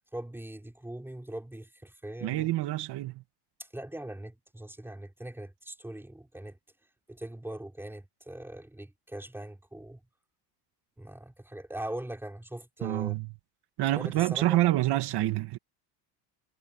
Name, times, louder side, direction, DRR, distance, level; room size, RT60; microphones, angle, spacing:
voice 1, 0.1-2.5 3.6-6.6 7.1-10.0 11.0-13.2 13.9-14.6, right 1 dB, 5° right, 4.9 m, -41 dB
voice 2, 2.2-3.2 12.8-13.3 13.8-15.6, right 15 dB, 55° right, 2.1 m, -27 dB
supercardioid pair, 120°, 47 cm